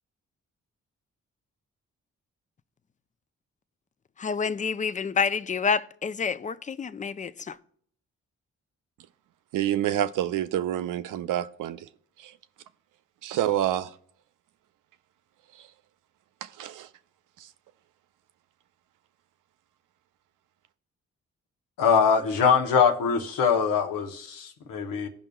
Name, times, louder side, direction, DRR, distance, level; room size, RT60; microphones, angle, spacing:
voice 1, 4.2-7.6, left 5 dB, 25° left, 0.4 m, -28 dB
voice 2, 9.5-11.9 12.2-12.3 13.2-13.9 16.6-16.9, right 12 dB, 70° right, 0.5 m, -27 dB
voice 3, 21.8-25.1, left 6 dB, 80° left, 0.9 m, -23 dB
15.5 x 5.3 x 2.3 m
supercardioid pair, 45°, 32 cm